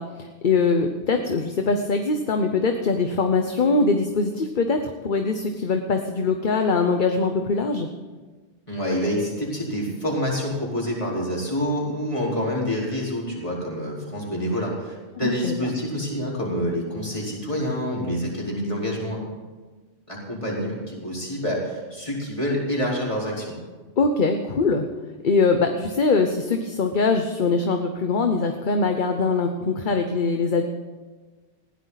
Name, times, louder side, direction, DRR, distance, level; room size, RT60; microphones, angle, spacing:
voice 1, 0.0-7.9 15.2-15.7 24.0-24.9 25.2-30.6, left 4 dB, 45° left, 5 dB, 1.0 m, -22 dB
voice 2, 8.7-19.2 20.1-23.6, equal, 25° left, -4 dB, 4.4 m, -27 dB
20.0 x 15.5 x 4.1 m, 1.3 s
omnidirectional pair, 1.2 m